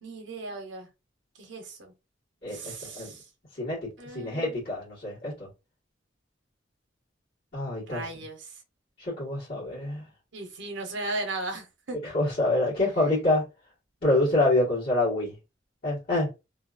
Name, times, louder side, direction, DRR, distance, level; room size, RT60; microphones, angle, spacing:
voice 1, 0.0-0.9 1.4-1.9 2.5-3.2 4.0-4.6 7.9-8.5 10.3-12.0, right 2 dB, 70° right, 0.8 m, -36 dB
voice 2, 2.4-3.1 3.6-3.8 4.1-5.5 7.5-8.0 9.0-10.0 12.0-13.4 14.0-15.3 15.8-16.3, left 2 dB, 55° left, 1.4 m, -26 dB
2.7 x 2.4 x 2.4 m
head